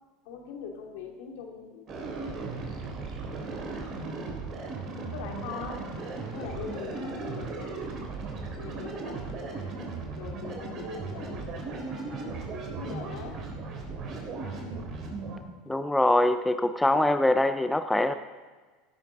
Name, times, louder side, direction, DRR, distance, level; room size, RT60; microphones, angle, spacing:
voice 1, 0.2-2.3 5.1-5.8 6.3-8.1 8.5-9.8 10.1-11.5 12.0-12.5 12.7-13.4, left 6 dB, 70° left, 1 dB, 2.6 m, -42 dB
sound 1, 1.9-15.4, right 3 dB, 45° right, 3.4 m, -36 dB
voice 2, 15.7-18.1, left 1 dB, 10° left, 10 dB, 0.6 m, -23 dB
16.0 x 12.0 x 3.9 m, 1.4 s
hypercardioid pair, 85°, 0 cm